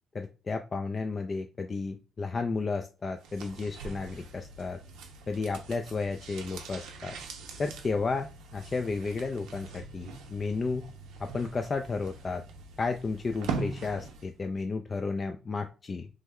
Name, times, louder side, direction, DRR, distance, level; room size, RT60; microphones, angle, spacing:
voice 1, 0.1-4.8 5.3-7.2 7.6-10.9 11.2-12.4 12.8-16.1, left 4 dB, 35° left, 5 dB, 0.3 m, -33 dB
sound 1, 3.2-14.4 14.7-14.8, right 4 dB, 90° right, 0.5 m, -42 dB
3.1 x 2.2 x 3.5 m, 0.32 s
cardioid pair, 90°, 0 cm